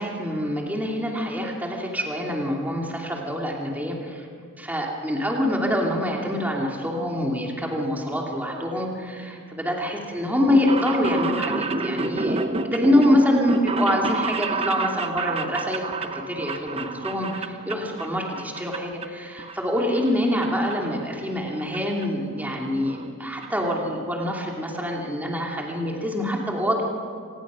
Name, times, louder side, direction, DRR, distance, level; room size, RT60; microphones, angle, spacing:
voice 1, 0.0-4.3 4.6-26.8, left 1 dB, 10° right, -1 dB, 2.7 m, -25 dB
sound 1, 10.3-18.1 18.4-19.1 19.4-20.5 20.7-20.8 21.7-21.8 22.0-22.1 22.4-22.5 22.8-23.0 23.4-23.5 23.7-23.8, right 3 dB, 30° right, 0.9 m, -29 dB
26.0 x 19.5 x 6.3 m, 2.3 s
head